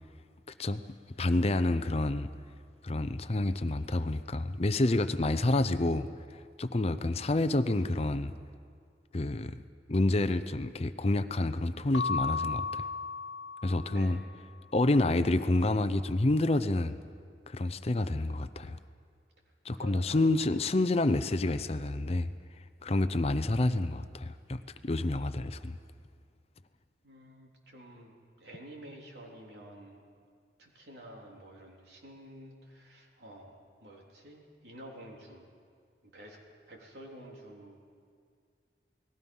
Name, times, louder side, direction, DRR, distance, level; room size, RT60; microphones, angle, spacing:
voice 1, 1.2-2.3 2.8-6.1 6.6-8.3 9.1-9.6 9.9-12.8 13.6-14.2 14.7-17.0 17.5-18.8 19.6-22.3 22.8-25.8, left 2 dB, 35° left, 11 dB, 0.6 m, -28 dB
Keyboard (musical) / Bell, 11.9-14.4, left 5 dB, 85° left, 0.5 m, -35 dB
voice 2, 13.9-14.3 19.7-20.4 27.0-28.1 28.4-30.0 30.6-35.5 36.1-36.4 36.7-37.8, right 1 dB, 70° right, -1 dB, 3.6 m, -50 dB
29.0 x 19.5 x 5.5 m, 2.2 s
head